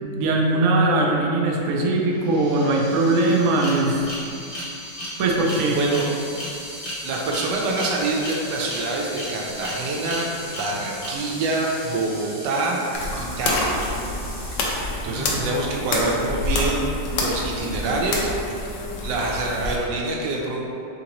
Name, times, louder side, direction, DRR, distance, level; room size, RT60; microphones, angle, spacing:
voice 1, 0.0-4.0 5.2-5.8 15.1-15.4, right 2 dB, 70° right, -1 dB, 0.8 m, -21 dB
sound 1, 1.9-2.0 2.2-13.0, equal, 60° left, 1.5 m, -36 dB
sound 2, 5.4-15.0, equal, 35° right, 1.2 m, -42 dB
voice 2, 5.7-6.1 7.0-10.3 10.6-13.7 15.0-16.9 17.2-18.3 18.6-18.7 19.0-20.6, right 2 dB, 85° right, -1 dB, 1.3 m, -26 dB
sound 3, 12.9-19.8, left 2 dB, 85° left, 1.3 m, -27 dB
3.9 x 3.9 x 2.9 m, 2.6 s
omnidirectional pair, 1.8 m